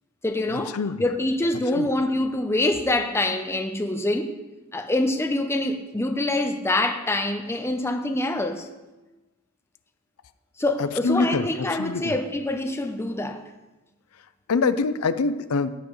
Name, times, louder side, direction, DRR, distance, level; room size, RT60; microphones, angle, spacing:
voice 1, 0.2-4.4 4.7-8.7 10.6-13.4, left 1 dB, 10° left, 0.6 m, -25 dB
voice 2, 11.0-11.4 11.8-12.0 14.5-15.7, left 4 dB, 90° left, 0.5 m, -23 dB
14.5 x 9.3 x 3.1 m
head